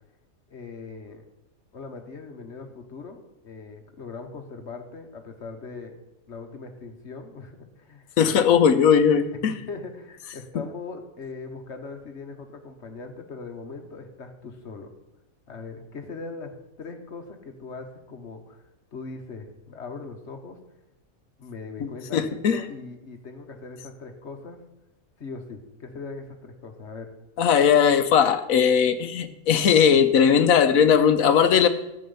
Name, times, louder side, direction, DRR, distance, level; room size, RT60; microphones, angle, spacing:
voice 1, 0.5-1.2 1.7-6.0 6.3-8.1 9.1-14.9 15.5-18.6 18.9-20.6 21.4-24.6 25.2-27.1, left 4 dB, 55° left, 5 dB, 1.5 m, -40 dB
voice 2, 8.2-9.5 21.8-22.6 27.4-31.7, left 7 dB, 75° left, 11 dB, 1.2 m, -19 dB
12.5 x 7.8 x 5.6 m, 0.92 s
omnidirectional pair, 1.5 m